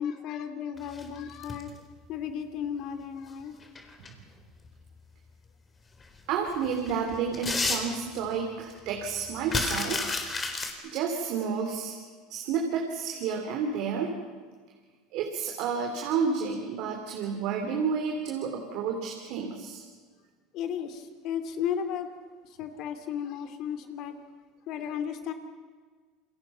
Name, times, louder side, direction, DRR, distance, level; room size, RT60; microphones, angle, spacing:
voice 1, 0.0-1.7 2.1-3.6 20.5-22.1 22.4-24.2 24.7-25.3, left 8 dB, 55° left, 8 dB, 2.7 m, -34 dB
sound 1, 0.8-1.8 3.4-4.1 4.6-4.7 6.0-6.1 6.5-8.4 8.7-8.8 9.0-10.7, left 3 dB, 25° left, 4.0 m, -31 dB
voice 2, 6.3-10.2 10.9-11.9 12.3-14.1 15.1-19.8, right 6 dB, 65° right, 2 dB, 3.4 m, -30 dB
29.0 x 22.0 x 5.8 m, 1.5 s
supercardioid pair, 115°, 0 cm